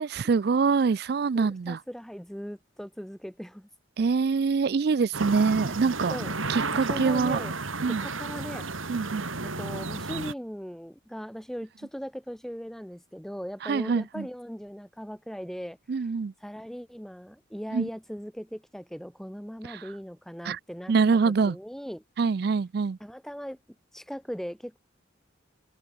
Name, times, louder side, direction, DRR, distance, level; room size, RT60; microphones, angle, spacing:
voice 1, 0.0-1.8 4.0-6.2 6.5-7.4 7.8-8.0 8.9-9.3 13.6-14.3 15.9-16.3 17.7-17.9 19.7-19.8 20.4-20.6 20.9-21.6 22.2-23.0, right 5 dB, 50° right, 0.4 m, -25 dB
voice 2, 1.3-3.7 6.1-6.3 6.7-7.6 7.9-9.0 9.4-16.0 16.4-20.9 21.2-22.0 23.0-23.6 23.9-24.8, equal, ahead, 1.6 m, -39 dB
sound 1, 5.1-10.3, right 3 dB, 90° right, 3.9 m, -32 dB
open air
head